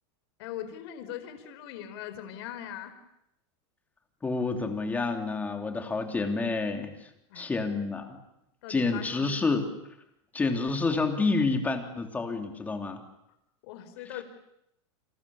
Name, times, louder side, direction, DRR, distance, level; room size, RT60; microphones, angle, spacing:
voice 1, 0.4-2.9 7.3-7.5 8.6-9.6 10.5-10.6 13.6-14.2, left 11 dB, 60° left, 9 dB, 4.8 m, -40 dB
voice 2, 4.2-7.1 7.3-8.2 8.7-9.7 10.3-13.0, left 3 dB, 10° left, 4 dB, 3.2 m, -28 dB
29.5 x 27.0 x 7.2 m, 0.80 s
supercardioid pair, 160°, 15 cm